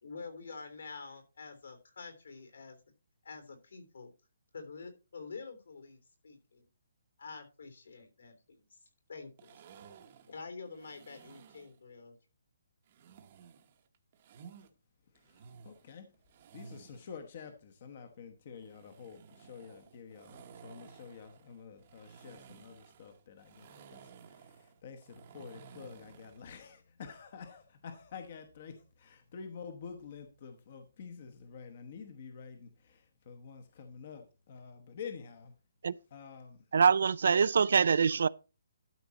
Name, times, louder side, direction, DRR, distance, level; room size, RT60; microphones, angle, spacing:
voice 1, 0.0-2.8 3.2-4.1 4.5-6.6 7.2-9.6 10.3-12.2, left 4 dB, 65° left, 3.2 m, -47 dB
sound 1, 9.4-11.8 12.9-14.7 15.1-17.1 18.6-26.5, right 6 dB, 25° right, 1.0 m, -55 dB
voice 2, 15.0-16.2 16.5-35.5 36.1-36.7, left 6 dB, 30° left, 1.0 m, -49 dB
voice 3, 36.7-38.3, right 6 dB, 55° right, 0.4 m, -24 dB
12.0 x 6.0 x 4.1 m
hypercardioid pair, 180°, 0 cm